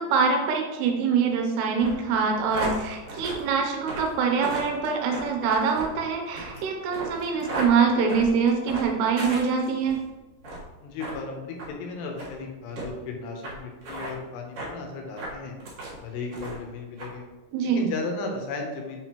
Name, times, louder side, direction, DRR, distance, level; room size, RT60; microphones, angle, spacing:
voice 1, 0.0-10.0 17.5-17.8, right 5 dB, 80° right, 3 dB, 2.7 m, -24 dB
sound 1, 1.7-10.0 10.4-10.7 11.0-11.2 11.6-11.7 12.2-12.3 12.7-12.9 13.4-13.5 13.8-14.1 14.6-14.7 15.1-16.0 16.3-16.7 17.0-17.1, right 1 dB, 60° right, 1.5 m, -35 dB
voice 2, 10.8-15.5 16.0-17.2 17.7-19.0, left 3 dB, 75° left, 2 dB, 3.0 m, -35 dB
7.3 x 5.2 x 3.0 m, 1.2 s
omnidirectional pair, 5.0 m